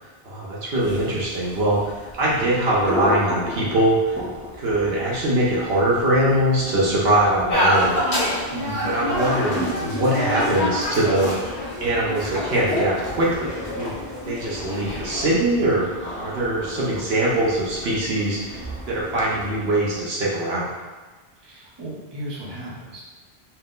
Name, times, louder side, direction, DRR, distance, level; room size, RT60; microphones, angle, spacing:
voice 1, 0.0-4.2 4.6-7.9 8.9-11.5 11.8-14.0 14.3-15.8 16.2-20.7, right 1 dB, 75° right, -5 dB, 1.1 m, -22 dB
sound 1, 0.7-20.0, equal, 15° left, 0.6 m, -35 dB
sound 2, 7.5-15.3, left 1 dB, 35° left, 1.0 m, -26 dB
voice 2, 8.5-9.0 21.4-23.0, equal, 25° right, -6 dB, 0.9 m, -35 dB
4.5 x 2.1 x 3.7 m, 1.3 s
omnidirectional pair, 1.1 m